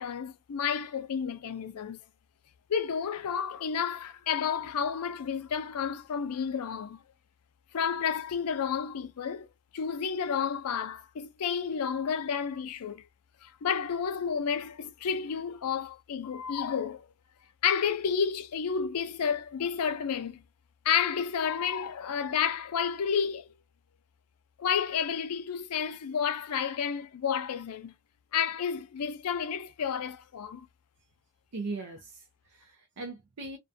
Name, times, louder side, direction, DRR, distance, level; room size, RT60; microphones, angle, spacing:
voice 1, 0.0-2.0 2.7-7.0 7.7-9.5 9.7-13.0 13.4-17.1 17.6-20.4 20.8-23.5 24.6-27.9 28.3-30.7, left 7 dB, 90° left, 0.4 m, -31 dB
voice 2, 31.5-33.6, right 3 dB, 85° right, 0.5 m, -39 dB
2.4 x 2.2 x 2.6 m
head